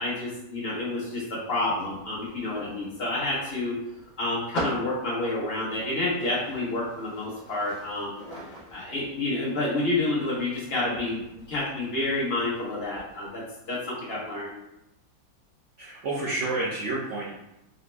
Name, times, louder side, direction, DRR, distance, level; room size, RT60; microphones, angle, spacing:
voice 1, 0.0-3.7 4.2-8.2 8.7-13.4 13.7-14.5, left 2 dB, 40° left, -6 dB, 1.1 m, -29 dB
sound 1, 1.8-13.3, right 1 dB, 70° left, 1.5 m, -43 dB
voice 2, 15.8-17.3, right 2 dB, 80° right, -6 dB, 0.6 m, -29 dB
4.1 x 2.1 x 3.2 m, 0.87 s
omnidirectional pair, 2.0 m